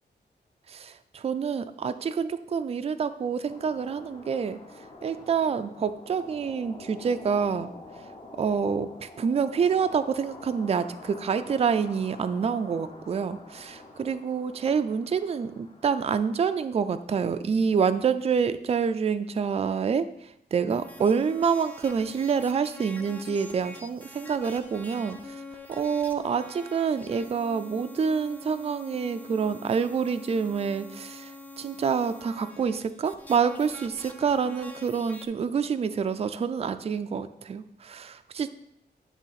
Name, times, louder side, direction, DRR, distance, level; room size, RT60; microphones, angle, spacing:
voice 1, 0.7-7.7 8.4-38.5, right 6 dB, 35° right, 11 dB, 0.4 m, -27 dB
sound 1, 3.5-17.3, left 2 dB, 30° left, 0.9 m, -47 dB
sound 2, 20.7-35.2, left 1 dB, 10° left, 0.6 m, -45 dB
9.8 x 3.5 x 5.7 m, 0.78 s
wide cardioid pair, 170°, 18 cm